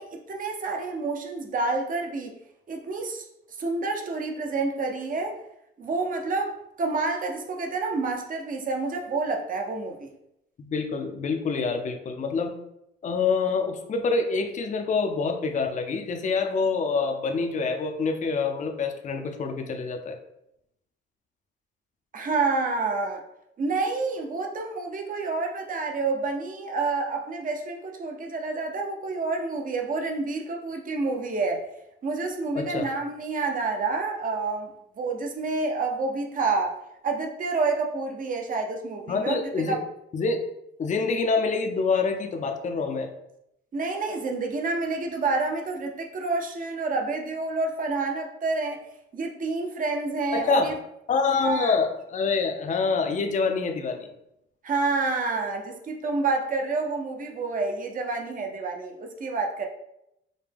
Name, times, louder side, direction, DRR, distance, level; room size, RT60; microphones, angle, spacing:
voice 1, 0.0-2.3 2.7-3.3 3.6-5.3 5.8-10.1 22.1-23.2 23.6-31.6 32.0-34.7 35.0-36.8 37.0-39.4 39.7-39.8 43.7-48.8 49.1-50.7 51.4-51.7 54.6-59.7, right 3 dB, 45° right, 3 dB, 0.7 m, -28 dB
voice 2, 10.6-12.5 13.0-20.2 32.5-32.9 39.1-39.8 40.1-40.4 40.8-43.1 50.3-50.7 51.1-54.1, left 4 dB, 40° left, 5 dB, 0.5 m, -26 dB
5.1 x 2.2 x 3.4 m, 0.82 s
cardioid pair, 90°, 20 cm